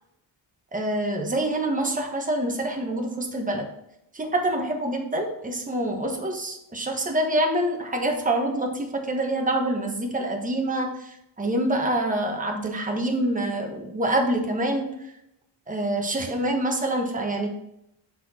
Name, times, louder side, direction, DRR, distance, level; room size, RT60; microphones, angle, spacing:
voice 1, 0.7-3.6 4.1-14.9 15.7-17.5, right 1 dB, 20° right, 2 dB, 1.2 m, -26 dB
7.1 x 4.4 x 4.2 m, 0.82 s
wide cardioid pair, 115°, 42 cm